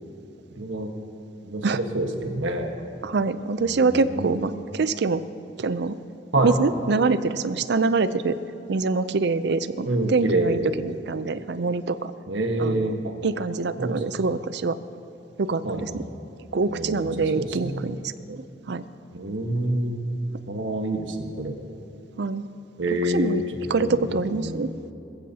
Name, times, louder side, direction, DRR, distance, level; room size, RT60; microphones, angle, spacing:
voice 1, 0.5-0.9 1.4-2.7 3.7-4.5 6.3-6.6 9.8-10.7 12.3-13.1 13.8-14.0 15.6-16.0 16.7-17.1 17.3-17.9 19.1-20.0 20.5-21.6 22.8-23.4 23.8-24.0 24.3-24.6, right 1 dB, 80° right, 4 dB, 1.3 m, -27 dB
voice 2, 3.0-5.2 5.6-6.0 6.4-8.4 8.7-12.1 12.6-12.9 13.2-14.8 15.4-16.0 16.5-18.0 18.3-18.8 22.2-22.5 23.1-23.4 23.7-24.7, right 4 dB, 60° right, 13 dB, 0.5 m, -25 dB
20.5 x 15.0 x 2.8 m, 2.7 s
head